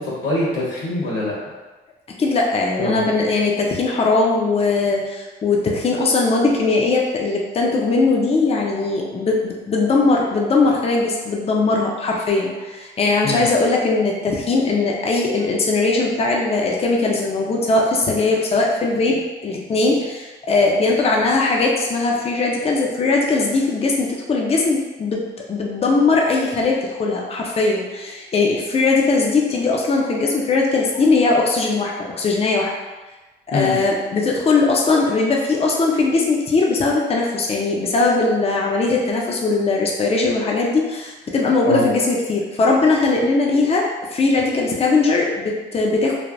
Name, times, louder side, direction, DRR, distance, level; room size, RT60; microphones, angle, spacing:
voice 1, 0.0-1.3 2.8-3.0 13.2-13.5 33.5-33.7 41.6-41.8, left 1 dB, 70° left, -6 dB, 1.3 m, -23 dB
voice 2, 2.2-32.7 33.5-43.9 44.1-46.1, left 3 dB, 30° left, -1 dB, 0.5 m, -19 dB
3.3 x 2.1 x 2.5 m, 1.2 s
cardioid pair, 90°, 20 cm